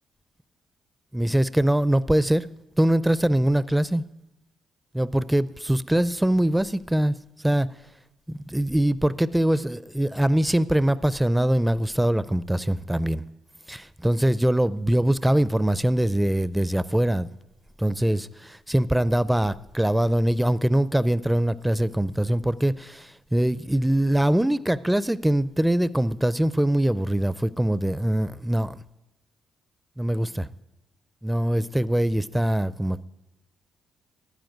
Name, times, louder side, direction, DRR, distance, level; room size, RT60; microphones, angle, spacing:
voice 1, 1.1-2.5 2.8-4.0 4.9-7.1 7.4-7.7 8.3-13.2 13.7-17.3 17.8-18.3 18.7-28.8 30.0-30.5 31.2-33.0, right 1 dB, 5° right, 17 dB, 0.4 m, -23 dB
13.0 x 8.9 x 9.1 m, 0.98 s
cardioid pair, 90°, 0 cm